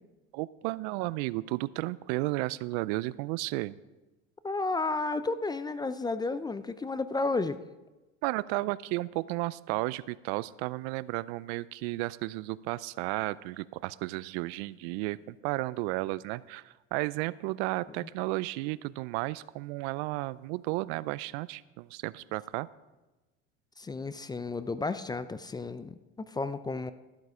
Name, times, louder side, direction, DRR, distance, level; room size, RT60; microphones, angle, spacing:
voice 1, 0.3-3.8 8.2-22.7, right 20 dB, 75° right, 19 dB, 0.5 m, -33 dB
voice 2, 4.4-7.6 23.8-26.9, left 3 dB, 15° left, 13 dB, 0.4 m, -32 dB
12.5 x 7.9 x 4.9 m, 1.1 s
supercardioid pair, 95°, 33 cm